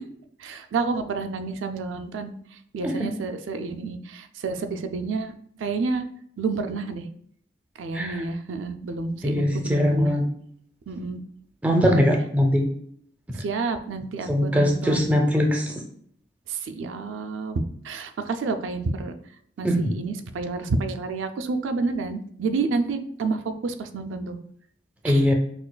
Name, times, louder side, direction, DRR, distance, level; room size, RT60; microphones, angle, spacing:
voice 1, 0.4-2.3 2.7-5.3 5.6-6.0 6.4-7.1 7.8-10.1 10.9-11.2 13.4-15.1 16.5-19.1 19.6-24.4 25.0-25.2, right 4 dB, 85° right, 8 dB, 0.4 m, -29 dB
voice 2, 9.2-10.2 11.6-12.6 14.3-15.7 19.6-19.9 25.0-25.3, equal, 10° right, 2 dB, 0.4 m, -21 dB
6.0 x 2.4 x 2.2 m, 0.65 s
head